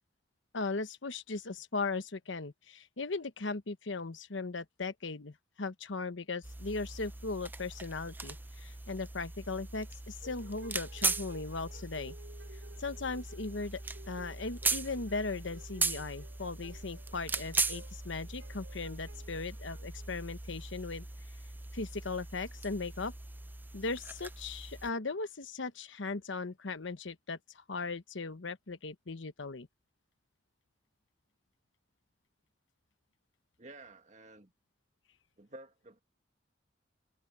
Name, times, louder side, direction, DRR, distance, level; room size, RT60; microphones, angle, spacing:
voice 1, 0.5-12.1 12.8-13.8 14.1-21.0 21.7-23.1 23.7-29.7, left 3 dB, 75° left, 1.1 m, -38 dB
sound 1, 6.4-24.9, right 3 dB, 10° right, 0.5 m, -39 dB
sound 2, 10.2-20.7, right 2 dB, 80° right, 7.8 m, -56 dB
voice 2, 33.6-34.5 35.4-36.0, right 2 dB, 40° right, 1.8 m, -51 dB
head